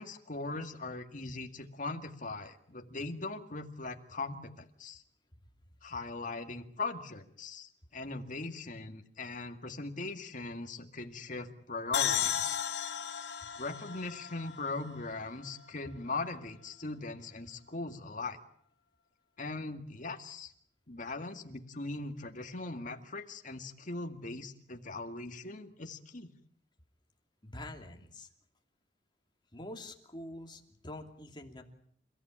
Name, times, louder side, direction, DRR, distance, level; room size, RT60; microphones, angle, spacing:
voice 1, 0.0-5.0 5.8-12.6 13.6-18.4 19.4-20.5 20.9-26.3, left 3 dB, 45° left, 5 dB, 2.0 m, -40 dB
sound 1, 11.9-15.5, left 9 dB, 75° left, 1.5 m, -34 dB
voice 2, 27.4-28.3 29.5-31.6, left 1 dB, 25° left, 3 dB, 2.8 m, -45 dB
29.0 x 15.0 x 8.9 m, 0.65 s
head